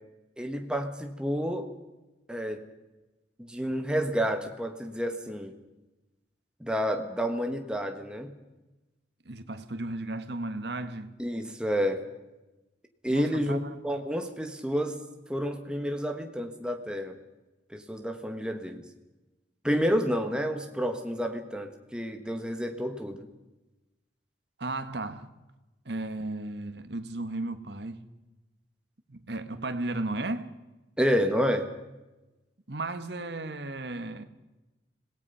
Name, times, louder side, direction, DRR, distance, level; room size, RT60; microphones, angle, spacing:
voice 1, 0.4-1.7 2.3-2.6 3.4-5.5 6.6-8.3 11.2-12.0 13.0-13.6 13.8-15.0 15.3-17.1 17.7-18.8 19.6-23.3 31.0-31.7, equal, 5° right, 1.5 m, -29 dB
voice 2, 9.2-11.1 13.1-13.8 24.6-25.3 25.8-28.1 29.1-30.5 32.7-34.2, right 2 dB, 65° right, 1.4 m, -35 dB
26.0 x 18.0 x 5.6 m
head